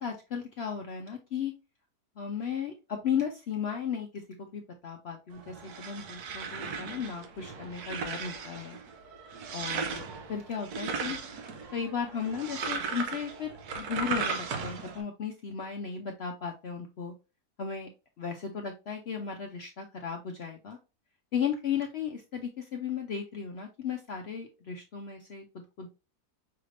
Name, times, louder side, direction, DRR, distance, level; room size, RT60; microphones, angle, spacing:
voice 1, 0.0-1.5 2.2-4.1 4.4-8.8 9.5-10.0 10.3-11.2 11.7-13.5 13.8-17.1 17.6-17.9 18.2-20.8 21.3-25.4 25.8-25.9, left 7 dB, 65° left, 3 dB, 0.6 m, -35 dB
sound 1, 5.3-15.0, right 5 dB, 75° right, 1.2 m, -37 dB
5.7 x 3.3 x 2.5 m, 0.30 s
omnidirectional pair, 1.7 m